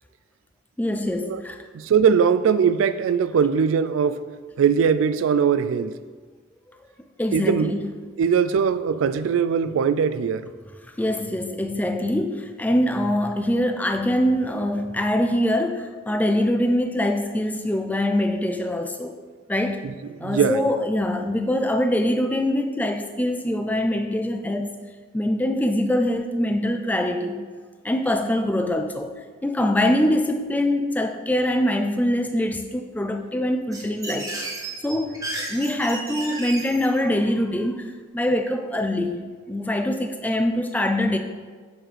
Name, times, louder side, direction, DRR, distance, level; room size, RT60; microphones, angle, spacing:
voice 1, 0.8-1.6 7.2-7.9 11.0-19.2 19.5-19.9 20.2-24.8 25.1-27.4 27.8-34.4 34.8-41.2, left 1 dB, 10° left, 6 dB, 0.3 m, -24 dB
voice 2, 1.7-4.2 4.6-5.9 7.3-7.7 8.2-10.5 19.8-19.9 20.2-20.6, right 7 dB, 80° right, 13 dB, 0.3 m, -20 dB
sound 1, 33.7-37.0, right 2 dB, 15° right, 0.8 m, -33 dB
7.0 x 5.8 x 3.3 m, 1.5 s
head